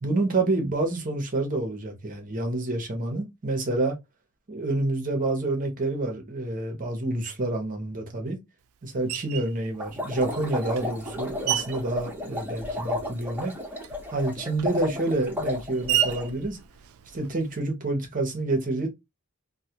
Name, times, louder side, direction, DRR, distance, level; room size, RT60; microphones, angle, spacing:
voice 1, 0.0-4.0 4.5-8.4 8.8-13.5 14.1-16.6 17.1-18.9, right 2 dB, 40° right, 0.7 m, -28 dB
Screech, 9.1-9.6 10.3-13.0 13.3-17.6, right 12 dB, 70° right, 0.3 m, -33 dB
sound 1, 9.8-16.3, left 2 dB, 10° right, 0.8 m, -33 dB
2.3 x 2.1 x 2.7 m
head